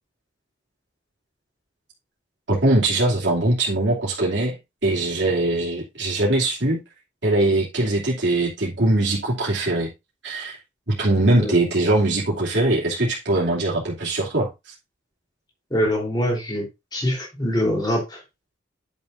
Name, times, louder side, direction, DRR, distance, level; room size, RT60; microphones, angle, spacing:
voice 1, 2.5-4.6 4.8-6.8 7.2-9.9 10.2-10.6 10.9-14.7, right 2 dB, 65° right, -5 dB, 2.9 m, -21 dB
voice 2, 15.7-16.7 16.9-18.2, equal, 20° left, -1 dB, 3.5 m, -23 dB
10.5 x 7.1 x 2.6 m, 0.23 s
head